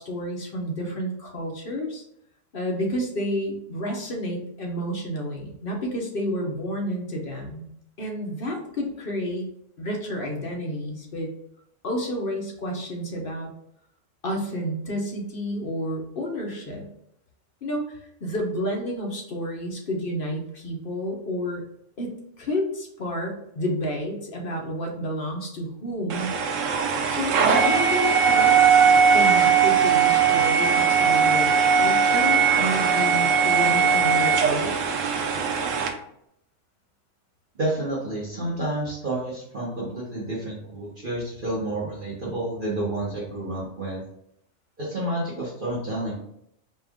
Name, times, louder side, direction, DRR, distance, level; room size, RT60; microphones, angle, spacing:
voice 1, 0.0-2.0 2.5-7.7 8.0-9.5 9.8-11.3 11.8-13.5 14.2-16.9 17.6-21.6 22.0-26.3 27.1-28.5 29.1-34.8, equal, 50° left, 0 dB, 1.0 m, -30 dB
sound 1, 26.1-35.9, right 6 dB, 75° right, 1.0 m, -19 dB
voice 2, 37.6-44.0 44.8-46.2, right 1 dB, 45° right, -7 dB, 1.1 m, -30 dB
4.3 x 2.5 x 3.5 m, 0.73 s
omnidirectional pair, 1.4 m